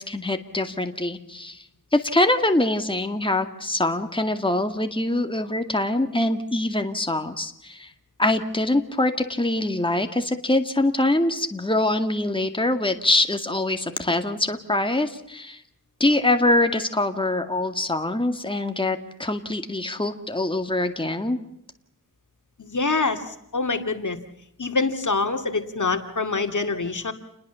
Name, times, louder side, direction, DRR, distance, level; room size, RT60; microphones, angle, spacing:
voice 1, 0.0-1.6 1.9-7.9 8.2-15.6 16.0-21.4, left 2 dB, 15° left, 6 dB, 2.1 m, -24 dB
voice 2, 22.6-24.2 24.6-27.1, left 3 dB, 60° left, 7 dB, 2.4 m, -25 dB
29.5 x 20.5 x 7.0 m, 0.76 s
wide cardioid pair, 70°, 33 cm